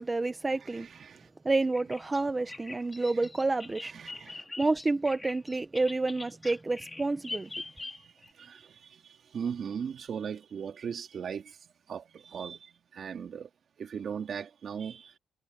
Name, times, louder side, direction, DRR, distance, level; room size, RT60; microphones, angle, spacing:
voice 1, 0.0-0.9 1.4-3.9 4.3-7.5, right 3 dB, 20° right, 1.1 m, -29 dB
voice 2, 0.7-1.3 3.0-3.1 3.9-4.4 7.7-11.6 11.9-13.5 13.8-15.2, right 7 dB, 55° right, 3.0 m, -39 dB
Bird vocalization bird call bird song, 1.7-8.3, left 3 dB, 20° left, 4.3 m, -43 dB
cardioid pair, 90°, 0 cm